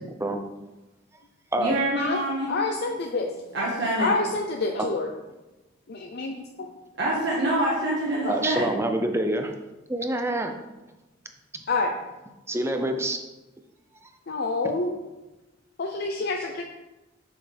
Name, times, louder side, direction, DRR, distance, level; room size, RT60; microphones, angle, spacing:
voice 1, 1.6-2.5 3.5-4.1 7.0-8.7, right 1 dB, 60° right, -6 dB, 1.5 m, -25 dB
voice 2, 2.5-3.3 4.0-5.1 5.9-6.4 8.2-8.4 11.7-11.9 14.3-15.0 15.8-16.6, left 3 dB, 55° left, 2 dB, 0.6 m, -27 dB
voice 3, 8.3-9.5 9.9-10.5 12.5-13.2, right 1 dB, 15° right, 5 dB, 0.6 m, -26 dB
7.1 x 6.8 x 3.4 m, 1.1 s
head